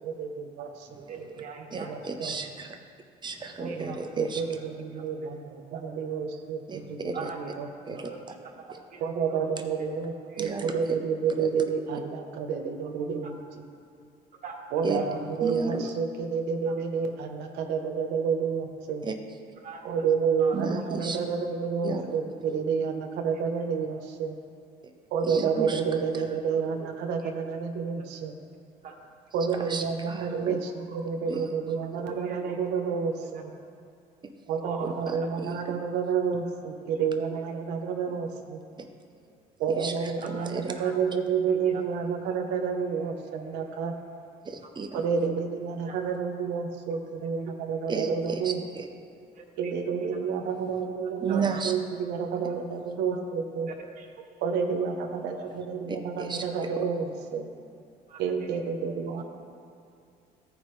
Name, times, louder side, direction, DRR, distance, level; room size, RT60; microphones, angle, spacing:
voice 1, 0.0-1.0 1.6-2.3 3.6-8.0 9.0-13.4 14.7-19.1 19.8-24.4 25.1-28.3 29.3-33.5 34.5-38.6 39.6-43.9 44.9-48.6 49.6-53.7 54.4-57.5 58.2-59.2, right 6 dB, 90° right, 4 dB, 1.0 m, -30 dB
voice 2, 1.1-1.9 3.6-4.0 4.3-5.3 5.7-5.8 7.1-8.2 8.6-9.5 10.3-10.8 14.4-14.5 19.6-19.8 20.4-20.6 27.2-27.3 28.8-28.9 29.6-29.7 30.9-31.0 32.0-32.6 34.6-34.9 35.2-35.3 40.2-40.5 40.8-40.9 41.5-41.8 44.6-44.7 45.8-45.9 47.2-47.5 49.3-49.7 51.3-51.6 53.7-54.1 58.1-58.5 59.2-59.3, right 5 dB, 50° right, 0 dB, 1.7 m, -42 dB
voice 3, 1.7-2.8 3.2-4.4 6.7-7.3 7.9-8.1 10.4-10.8 11.4-11.6 14.8-15.0 15.4-15.9 19.0-19.2 20.5-21.2 21.8-22.2 25.2-25.8 26.1-26.3 29.6-30.6 31.3-31.4 35.0-35.2 35.4-35.8 38.8-38.9 39.8-40.7 44.5-45.0 47.9-48.9 51.2-51.7 55.9-56.7, right 4 dB, 25° right, 4 dB, 0.8 m, -33 dB
15.5 x 5.2 x 3.2 m, 2.5 s
cardioid pair, 110°, 17 cm